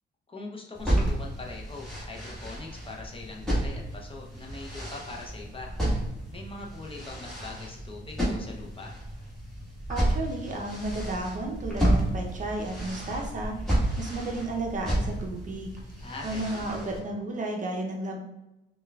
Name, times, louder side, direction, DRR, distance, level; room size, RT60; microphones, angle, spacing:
voice 1, 0.3-5.7 6.3-8.9 16.0-16.7, left 3 dB, 25° left, 0 dB, 0.7 m, -42 dB
sound 1, 0.7-17.0, right 1 dB, ahead, 1.4 m, -31 dB
voice 2, 9.9-13.6 14.0-15.7 16.2-18.2, right 2 dB, 40° right, 1 dB, 0.6 m, -33 dB
5.3 x 2.3 x 2.3 m, 0.97 s
cardioid pair, 90°, 20 cm